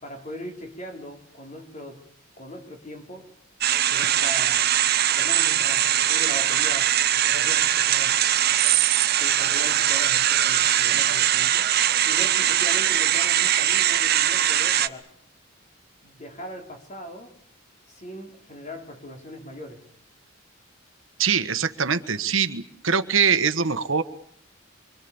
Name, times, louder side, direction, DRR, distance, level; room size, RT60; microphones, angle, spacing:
voice 1, 0.0-2.0 2.4-3.3 3.9-4.6 5.2-8.2 9.0-11.7 12.0-15.1 16.0-17.3 17.9-19.8, equal, 35° left, 3 dB, 4.6 m, -39 dB
sound 1, 3.6-14.9, right 11 dB, 50° right, 1.0 m, -21 dB
voice 2, 21.2-24.0, right 6 dB, 75° right, 10 dB, 1.5 m, -23 dB
26.0 x 25.0 x 7.2 m, 0.65 s
head